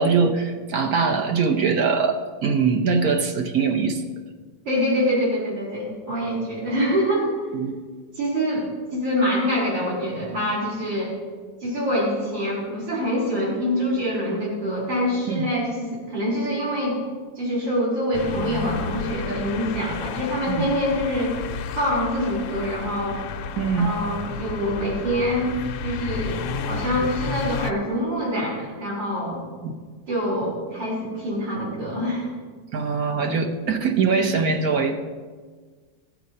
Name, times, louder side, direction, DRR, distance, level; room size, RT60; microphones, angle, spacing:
voice 1, 0.0-4.0 7.5-7.7 15.3-15.5 20.5-20.6 23.6-23.9 29.6-29.7 32.7-35.0, right 5 dB, 60° right, 4 dB, 1.2 m, -22 dB
voice 2, 4.6-7.3 8.2-11.1 11.6-17.0 17.4-21.5 21.7-23.2 23.8-25.6 25.8-29.4 30.1-32.3, equal, 75° right, -7 dB, 4.7 m, -25 dB
sound 1, 18.1-27.7, left 6 dB, 85° left, 1.4 m, -32 dB
14.5 x 7.7 x 5.4 m, 1.5 s
omnidirectional pair, 2.0 m